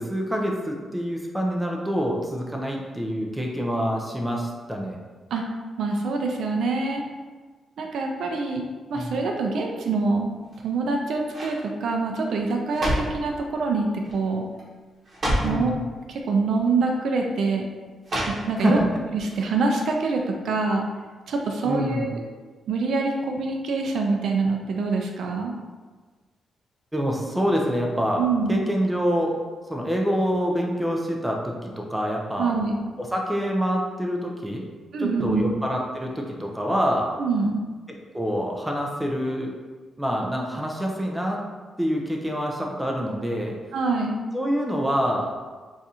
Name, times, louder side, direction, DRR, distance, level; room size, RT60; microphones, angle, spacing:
voice 1, 0.0-5.0 8.9-9.1 15.4-15.8 18.6-18.9 21.7-22.1 26.9-28.2 28.5-29.4 29.7-32.5 33.0-34.7 35.0-37.1 38.1-39.5 40.0-41.4 41.8-43.5 44.3-45.3, equal, 5° right, -1 dB, 0.4 m, -26 dB
voice 2, 5.8-7.0 7.8-10.3 10.6-14.4 15.4-15.7 16.1-17.7 18.3-18.8 19.1-20.9 21.3-22.2 22.7-25.5 28.2-28.6 32.4-32.8 34.9-35.5 37.2-37.6 43.7-44.2, right 3 dB, 75° right, 1 dB, 0.4 m, -25 dB
sound 1, 10.4-10.9 11.3-11.6 12.4-13.2 14.0-14.3 14.6-14.7 15.0-15.6 16.6-16.7 18.0-18.8 19.2-19.3, equal, 40° right, 0.9 m, -28 dB
2.6 x 2.4 x 4.1 m, 1.4 s
cardioid pair, 120°, 0 cm